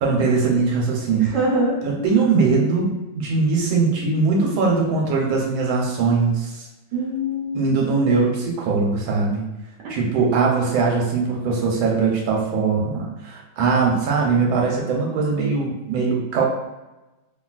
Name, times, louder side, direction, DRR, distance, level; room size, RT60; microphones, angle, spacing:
voice 1, 0.0-1.3 1.8-6.7 7.5-9.5 9.9-16.4, right 4 dB, 90° right, -1 dB, 1.5 m, -21 dB
voice 2, 1.2-1.8 6.9-7.6, right 1 dB, 70° right, -4 dB, 1.2 m, -23 dB
3.0 x 2.8 x 2.3 m, 1.0 s
omnidirectional pair, 2.1 m